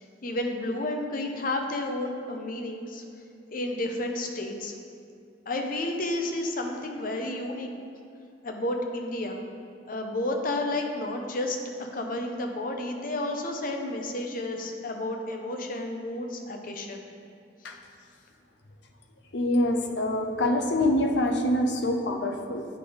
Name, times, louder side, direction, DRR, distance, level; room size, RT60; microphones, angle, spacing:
voice 1, 0.0-3.0 3.5-4.7 5.5-7.7 8.4-9.4 9.9-17.0, left 1 dB, 55° left, 3 dB, 0.7 m, -31 dB
voice 2, 19.3-22.8, left 1 dB, 85° left, 4 dB, 0.7 m, -25 dB
8.9 x 5.0 x 3.9 m, 2.4 s
head